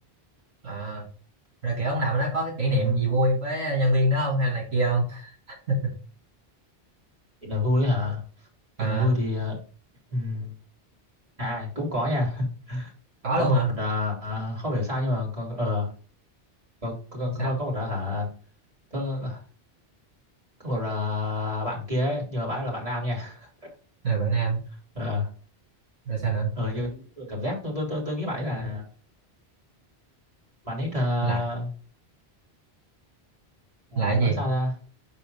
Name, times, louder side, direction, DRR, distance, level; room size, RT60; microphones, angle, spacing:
voice 1, 0.6-1.1 1.6-5.3 5.7-5.9 8.8-9.1 13.2-13.7 17.4-17.5 24.0-24.6 26.1-26.5 31.2-31.4 34.0-34.4, right 2 dB, 80° right, 0 dB, 2.0 m, -24 dB
voice 2, 2.7-3.2 7.4-8.2 8.8-9.5 10.1-10.5 11.4-12.9 13.4-15.9 16.8-18.3 18.9-19.4 20.6-23.4 24.9-25.3 26.5-28.8 30.6-31.7 33.9-34.7, left 1 dB, 30° right, -3 dB, 3.0 m, -28 dB
5.7 x 4.1 x 5.4 m, 0.39 s
omnidirectional pair, 1.1 m